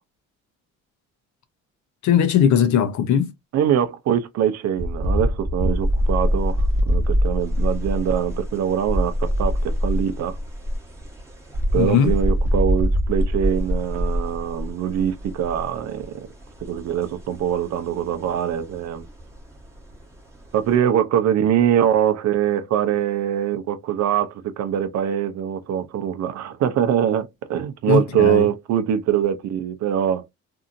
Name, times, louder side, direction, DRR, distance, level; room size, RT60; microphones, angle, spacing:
voice 1, 2.0-3.3 11.7-12.1 27.9-28.5, left 8 dB, 70° left, 0.7 m, -19 dB
voice 2, 3.5-10.4 11.7-16.3 16.6-19.1 20.5-30.3, right 9 dB, 60° right, 0.6 m, -23 dB
sound 1, 4.8-20.7, equal, 10° right, 1.1 m, -25 dB
2.7 x 2.5 x 2.5 m
cardioid pair, 115°, 30 cm